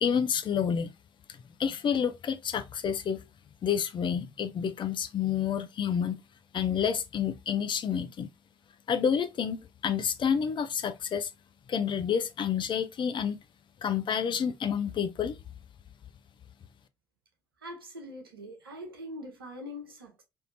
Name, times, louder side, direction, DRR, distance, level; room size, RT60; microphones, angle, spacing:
voice 1, 0.0-0.9 1.6-3.2 3.6-6.2 6.5-8.3 8.9-11.3 11.7-13.4 13.8-15.4, left 7 dB, 40° left, 0.5 m, -29 dB
voice 2, 17.6-20.2, left 1 dB, 90° right, 0.8 m, -43 dB
3.5 x 2.7 x 2.6 m
figure-of-eight pair, 50°, 12 cm